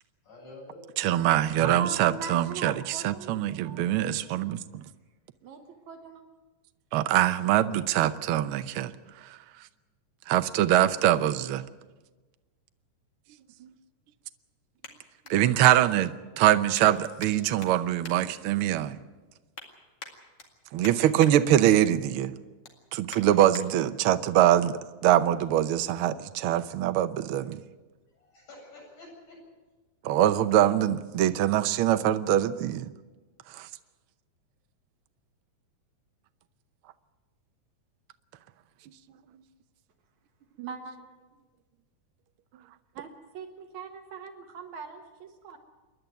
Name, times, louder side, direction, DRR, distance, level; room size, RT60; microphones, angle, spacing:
voice 1, 0.2-1.1 28.1-29.4, left 2 dB, 85° left, -2 dB, 9.5 m, -48 dB
voice 2, 1.0-4.8 6.9-8.9 9.2-9.4 10.3-11.6 13.6-13.7 15.3-19.0 20.7-22.3 22.9-27.6 30.0-32.9 33.5-33.7, right 12 dB, 85° right, 10 dB, 1.2 m, -23 dB
voice 3, 1.6-4.4 5.5-5.6 5.9-6.2 40.6-41.0 43.0-43.1 43.3-45.6, right 5 dB, 70° right, 4 dB, 2.7 m, -40 dB
sound 1, 12.2-16.1 16.7-17.3 17.6-18.9 19.3-19.7 20.0-21.3 21.8-22.0 22.4-23.7 24.2-24.3, left 4 dB, 50° left, 2.9 m, -47 dB
28.0 x 11.0 x 9.2 m, 1.3 s
omnidirectional pair, 3.5 m